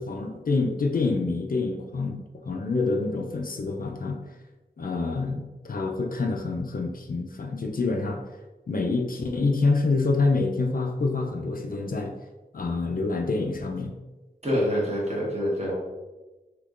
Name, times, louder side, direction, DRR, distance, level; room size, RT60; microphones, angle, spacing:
voice 1, 0.0-4.2 4.8-8.2 8.7-12.1 12.5-13.9, left 3 dB, 55° left, 2 dB, 0.4 m, -27 dB
voice 2, 14.4-15.8, equal, 35° right, -5 dB, 1.1 m, -26 dB
3.5 x 3.0 x 2.4 m, 1.1 s
wide cardioid pair, 75°, 18 cm